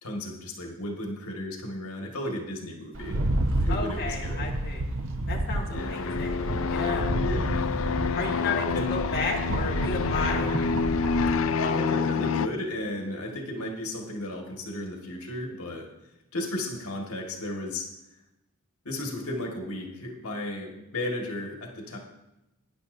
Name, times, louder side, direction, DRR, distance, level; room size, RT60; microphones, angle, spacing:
voice 1, 0.0-3.2 3.6-4.5 5.7-6.1 7.2-7.8 8.7-9.0 11.6-15.9 16.3-17.9 18.9-22.0, left 1 dB, 85° left, 1 dB, 1.9 m, -34 dB
Rattle, 3.0-11.4, right 1 dB, 65° right, 0.9 m, -30 dB
voice 2, 3.7-4.8 5.3-7.2 8.1-10.5, left 3 dB, 45° left, -3 dB, 1.8 m, -33 dB
sound 1, 5.7-12.5, left 5 dB, 60° left, 0.4 m, -28 dB
19.5 x 10.0 x 2.7 m, 0.93 s
head